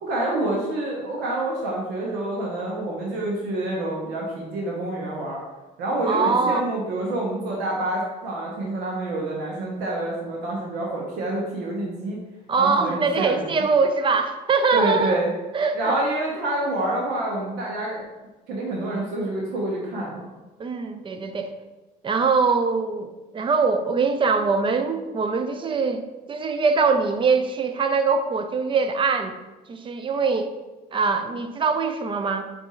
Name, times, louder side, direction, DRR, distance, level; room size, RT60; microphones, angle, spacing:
voice 1, 0.0-5.4 5.8-12.2 12.6-13.5 14.7-15.3 15.7-18.0 18.5-20.3, right 1 dB, 85° right, -3 dB, 0.9 m, -27 dB
voice 2, 6.1-6.7 12.5-15.2 15.5-15.9 20.6-21.5 22.0-29.4 29.7-30.5 30.9-32.4, right 4 dB, 30° right, 7 dB, 0.4 m, -23 dB
4.7 x 2.6 x 4.1 m, 1.1 s
cardioid pair, 110°, 17 cm